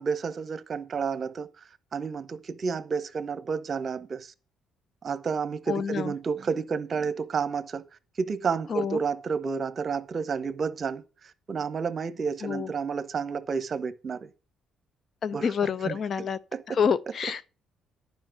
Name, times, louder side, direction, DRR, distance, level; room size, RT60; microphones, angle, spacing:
voice 1, 0.0-1.5 1.9-4.3 5.0-7.8 8.2-11.0 11.5-14.3 15.3-16.0 16.5-16.8, right 5 dB, 45° right, 1.1 m, -30 dB
voice 2, 5.7-6.1 8.7-9.0 12.4-12.7 15.2-16.4 16.7-17.5, left 7 dB, 55° left, 0.7 m, -28 dB
11.0 x 5.2 x 7.6 m
supercardioid pair, 75°, 0 cm